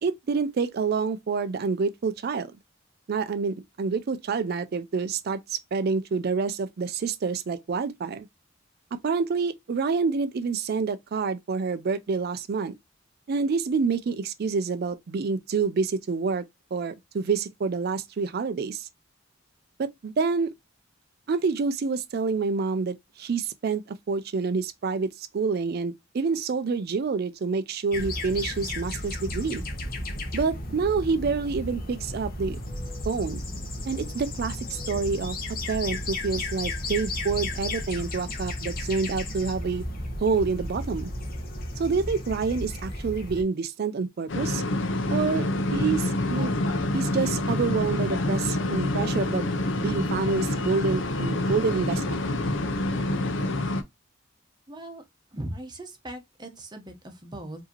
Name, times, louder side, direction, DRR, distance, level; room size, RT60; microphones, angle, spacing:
voice 1, 0.0-2.5 3.1-8.3 8.9-12.7 13.3-16.4 16.7-18.9 19.8-20.5 21.3-29.6 30.3-32.6 33.1-33.4 33.8-35.4 35.7-39.8 40.2-41.1 41.8-44.6 45.1-46.5 46.9-49.5 49.8-52.2, right 4 dB, 50° right, 0.4 m, -27 dB
sound 1, 27.9-43.4, left 1 dB, 50° left, 1.0 m, -34 dB
sound 2, 44.3-53.8, left 2 dB, 65° left, 0.7 m, -27 dB
voice 2, 54.7-55.0 55.3-57.6, right 1 dB, 20° right, 0.9 m, -39 dB
4.8 x 2.8 x 2.8 m
head